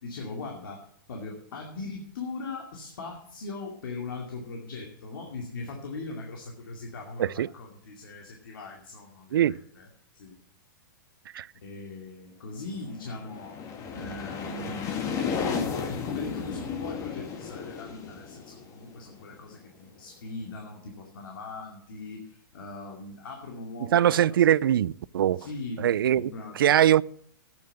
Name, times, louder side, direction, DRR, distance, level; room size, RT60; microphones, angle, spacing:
voice 1, 0.0-10.3 11.6-13.6 13.9-24.4 25.3-26.8, left 3 dB, 80° left, 2.4 m, -40 dB
sound 1, 12.9-19.6, left 6 dB, 30° left, 1.6 m, -34 dB
voice 2, 23.9-25.5 25.8-26.3 26.6-27.0, right 11 dB, 85° right, 0.4 m, -22 dB
9.3 x 8.9 x 7.5 m
hypercardioid pair, 140°, 11 cm